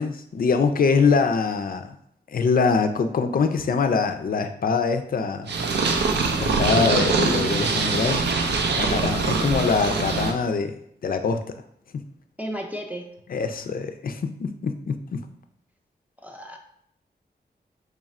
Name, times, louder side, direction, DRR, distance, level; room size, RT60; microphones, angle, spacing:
voice 1, 0.0-1.9 2.3-5.5 6.4-8.3 8.7-10.7 11.0-11.4 11.9-12.0 13.3-15.2, left 5 dB, 55° left, 7 dB, 0.4 m, -23 dB
Purr, 5.5-10.3, right 4 dB, 85° right, 0.4 m, -23 dB
voice 2, 12.4-13.1 16.2-16.6, equal, 10° right, 1 dB, 0.4 m, -33 dB
3.2 x 2.4 x 4.1 m, 0.71 s
wide cardioid pair, 90°, 17 cm